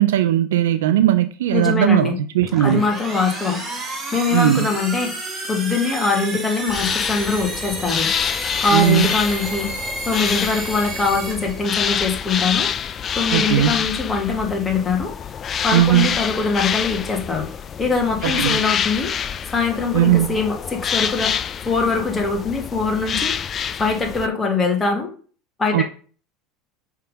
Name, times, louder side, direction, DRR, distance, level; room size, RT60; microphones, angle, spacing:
voice 1, 0.0-2.9 4.3-4.7 8.7-9.1 13.3-13.7 15.7-16.2 18.2-18.6 19.9-20.4 25.7-25.8, right 12 dB, 90° right, 0.3 m, -18 dB
voice 2, 1.5-2.2 2.6-3.7 4.1-5.1 5.5-8.1 8.6-9.7 10.0-12.7 13.1-15.3 15.6-19.1 19.5-21.4 21.7-23.3 23.8-25.1 25.6-25.8, left 4 dB, 20° left, 1.8 m, -22 dB
sound 1, 2.4-12.1, right 2 dB, 25° right, 2.6 m, -31 dB
sound 2, 6.7-24.3, left 8 dB, 35° left, 0.4 m, -26 dB
5.6 x 3.6 x 5.1 m
supercardioid pair, 110°, 0 cm